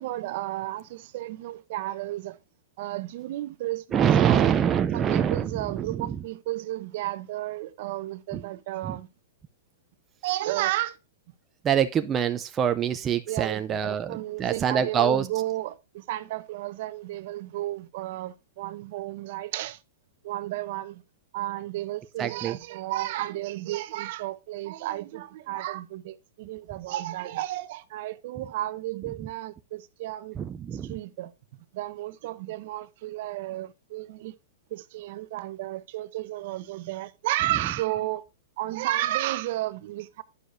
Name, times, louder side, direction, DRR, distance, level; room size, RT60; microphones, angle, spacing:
voice 1, 0.0-2.4 2.8-4.5 4.9-9.1 10.2-11.0 13.3-19.8 20.2-21.0 21.3-30.4 30.7-31.3 31.7-34.3 34.7-38.2 38.6-40.2, right 15 dB, 50° right, 0.8 m, -32 dB
voice 2, 3.9-5.5 8.8-9.0 11.6-15.3 22.2-22.6 30.4-30.9, right 8 dB, 20° right, 0.5 m, -24 dB
9.7 x 6.5 x 2.6 m
hypercardioid pair, 150°, 0 cm